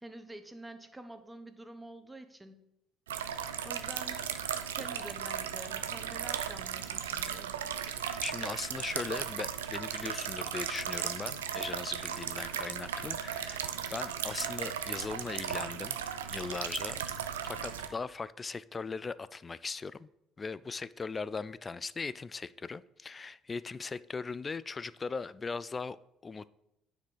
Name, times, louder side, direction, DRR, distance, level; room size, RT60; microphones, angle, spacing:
voice 1, 0.0-2.7 3.6-4.3 4.7-7.5, right 1 dB, 10° right, 1.0 m, -47 dB
sound 1, 3.1-17.9, right 9 dB, 90° right, 0.4 m, -36 dB
voice 2, 8.0-16.0 16.3-17.1 17.5-20.1 20.4-26.0 26.2-26.5, left 4 dB, 30° left, 0.3 m, -39 dB
9.3 x 4.3 x 4.9 m
hypercardioid pair, 55°, 0 cm